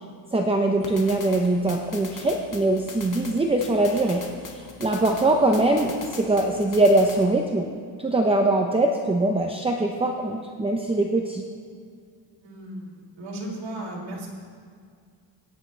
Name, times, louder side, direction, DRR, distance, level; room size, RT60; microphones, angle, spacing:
voice 1, 0.3-4.2 4.5-7.7 8.0-11.4, right 2 dB, 10° right, 2 dB, 0.7 m, -22 dB
sound 1, 0.8-7.3, left 4 dB, 40° left, 1.8 m, -41 dB
voice 2, 12.3-14.3, right 1 dB, 70° right, -3 dB, 3.7 m, -36 dB
22.0 x 10.5 x 3.3 m, 2.2 s
cardioid pair, 125°, 45 cm